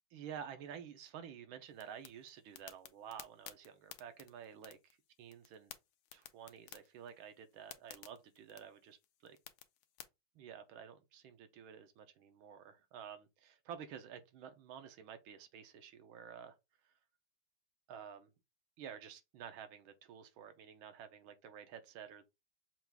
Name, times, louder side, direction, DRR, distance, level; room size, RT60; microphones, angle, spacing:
voice 1, 0.1-4.8 5.2-5.7 6.1-9.0 9.2-9.4 10.3-16.6 16.8-16.9 17.9-18.3 18.8-22.3, right 8 dB, 75° right, 1.5 m, -51 dB
sound 1, 1.7-10.0, left 12 dB, 75° left, 1.3 m, -55 dB
5.9 x 2.4 x 3.3 m
omnidirectional pair, 2.3 m